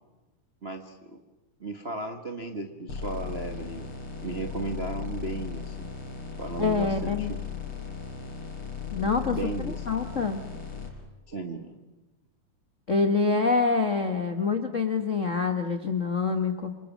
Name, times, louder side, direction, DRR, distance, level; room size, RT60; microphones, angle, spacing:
voice 1, 0.6-1.2 1.6-3.9 4.2-5.9 6.4-7.4 9.3-9.8 11.3-11.8, right 3 dB, 85° right, 3 dB, 0.5 m, -35 dB
sound 1, 2.9-10.9, left 7 dB, 50° left, 5.6 m, -37 dB
voice 2, 6.6-7.3 8.9-9.4 9.9-10.4 12.9-16.7, left 4 dB, 85° left, 6 dB, 0.6 m, -26 dB
28.0 x 25.5 x 7.4 m, 1.1 s
omnidirectional pair, 3.8 m